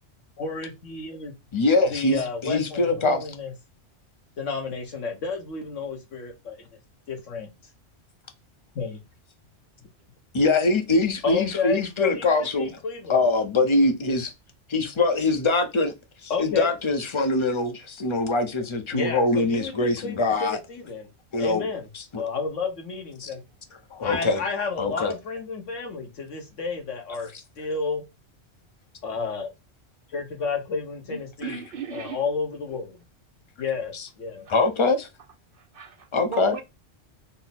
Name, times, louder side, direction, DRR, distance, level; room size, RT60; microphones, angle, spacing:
voice 1, 0.4-1.3 1.9-3.5 4.4-6.7 7.1-7.5 8.7-9.0 11.2-13.2 16.3-16.7 18.9-21.1 21.4-21.9 22.2-23.4 24.0-27.3 27.6-28.0 29.0-29.5 30.1-31.6 31.9-33.0 33.6-34.5, left 4 dB, 85° left, 1.4 m, -31 dB
voice 2, 1.5-3.2 10.3-12.8 13.1-14.3 14.7-15.9 16.2-20.6 21.3-21.7 21.9-22.2 23.2-23.3 23.9-24.4 24.8-25.1 31.4-31.6 33.9-34.1 34.5-35.1 36.1-36.6, left 3 dB, 30° left, 0.6 m, -23 dB
voice 3, 31.1-32.2 35.7-36.6, right 6 dB, 60° right, 0.6 m, -35 dB
4.2 x 2.1 x 4.1 m
omnidirectional pair, 1.2 m